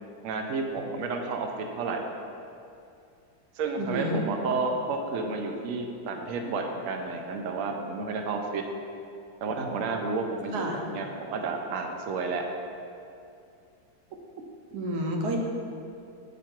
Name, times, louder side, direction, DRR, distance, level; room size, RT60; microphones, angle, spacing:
voice 1, 0.2-2.1 3.6-8.6 9.4-12.5, right 3 dB, 85° right, 3 dB, 0.7 m, -31 dB
voice 2, 3.8-4.2 10.5-10.8 14.7-15.4, right 1 dB, 70° right, 1 dB, 1.2 m, -29 dB
7.8 x 3.1 x 4.4 m, 2.6 s
omnidirectional pair, 2.0 m